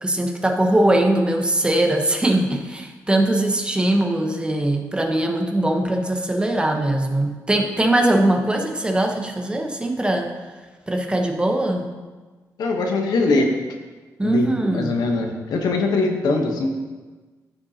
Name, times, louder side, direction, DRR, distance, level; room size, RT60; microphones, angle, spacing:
voice 1, 0.0-10.3 10.9-11.9 14.2-15.0, right 1 dB, 15° right, 3 dB, 0.9 m, -21 dB
voice 2, 12.6-13.5 14.2-16.7, left 3 dB, 85° left, 3 dB, 1.0 m, -22 dB
13.5 x 5.3 x 2.8 m, 1.3 s
cardioid pair, 95°, 7 cm